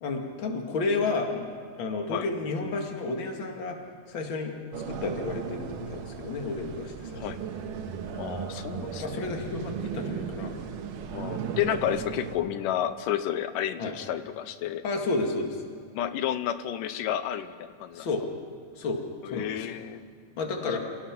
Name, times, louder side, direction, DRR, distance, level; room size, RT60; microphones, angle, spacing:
voice 1, 0.0-1.5 1.8-3.8 4.1-4.5 4.9-7.3 9.0-10.5 13.8-14.0 14.8-15.6 17.9-18.2 18.8-19.6 20.4-20.8, left 3 dB, 40° left, 2 dB, 2.5 m, -31 dB
sound 1, 4.7-12.4, right 6 dB, 80° right, 2.8 m, -36 dB
voice 2, 8.2-9.3 11.1-14.8 16.0-18.1 19.2-20.0 20.7-20.8, left 11 dB, 90° left, 11 dB, 2.4 m, -31 dB
28.0 x 17.0 x 6.0 m, 2.2 s
omnidirectional pair, 3.7 m